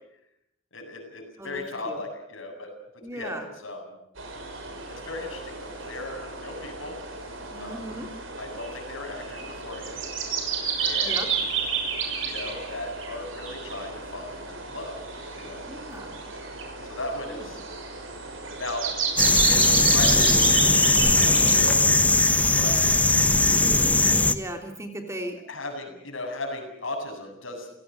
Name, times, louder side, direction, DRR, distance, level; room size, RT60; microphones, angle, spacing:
voice 1, 0.7-3.8 4.9-7.0 7.6-7.8 8.4-10.0 10.8-11.2 12.2-14.4 14.7-15.0 15.4-15.6 16.8-17.6 18.6-18.9 19.3-20.4 21.1-21.9 22.5-23.0 25.5-27.7, left 2 dB, 80° left, 4 dB, 7.9 m, -36 dB
voice 2, 1.4-2.0 3.0-3.5 7.5-8.1 11.0-11.3 15.7-16.1 17.3-17.5 24.3-25.4, right 1 dB, 15° right, 4 dB, 3.2 m, -37 dB
sound 1, 4.2-21.7, right 6 dB, 85° right, 6.4 m, -31 dB
sound 2, 19.2-24.3, left 2 dB, 10° left, 1.1 m, -19 dB
29.5 x 17.5 x 7.8 m, 0.78 s
head